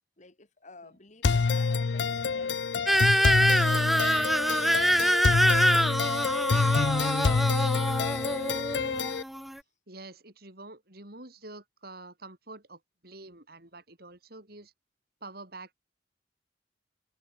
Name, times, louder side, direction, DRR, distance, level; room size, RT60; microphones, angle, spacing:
voice 1, 0.2-8.8, left 3 dB, 45° left, 2.4 m, -52 dB
sound 1, 1.2-9.2, left 4 dB, 70° left, 0.5 m, -27 dB
sound 2, 2.9-9.6, equal, ahead, 0.4 m, -25 dB
voice 2, 9.9-14.7 15.2-15.7, right 2 dB, 60° right, 6.0 m, -47 dB
head